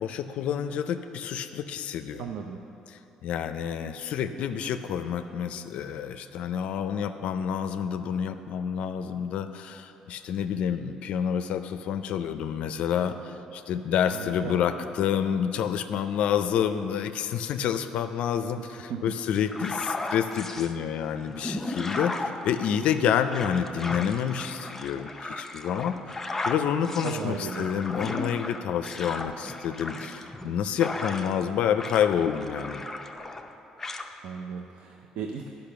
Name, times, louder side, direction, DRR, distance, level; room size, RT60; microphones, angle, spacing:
voice 1, 0.0-2.3 2.9-22.2 22.4-26.0 26.5-32.8, left 8 dB, 70° left, 9 dB, 0.4 m, -28 dB
voice 2, 2.2-2.6 14.1-14.6 18.6-18.7 18.9-19.0 27.0-27.7 34.2-35.5, right 7 dB, 75° right, 3 dB, 0.5 m, -36 dB
sound 1, 19.5-20.7 21.2-31.5 31.8-33.5 33.8-34.1, left 2 dB, 15° left, 0.6 m, -35 dB
10.5 x 5.3 x 6.7 m, 3.0 s
cardioid pair, 110°, 2 cm